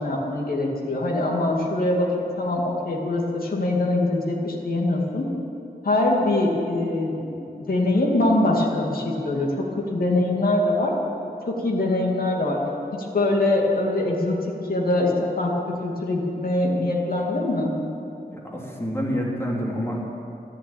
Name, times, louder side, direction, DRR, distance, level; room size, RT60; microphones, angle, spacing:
voice 1, 0.0-5.3 5.8-10.9 11.5-12.6 12.9-14.4 14.7-17.7, left 2 dB, 65° left, -1 dB, 2.2 m, -23 dB
voice 2, 18.3-20.0, equal, 15° left, -2 dB, 3.0 m, -28 dB
14.5 x 10.0 x 9.1 m, 2.8 s
wide cardioid pair, 110°, 16 cm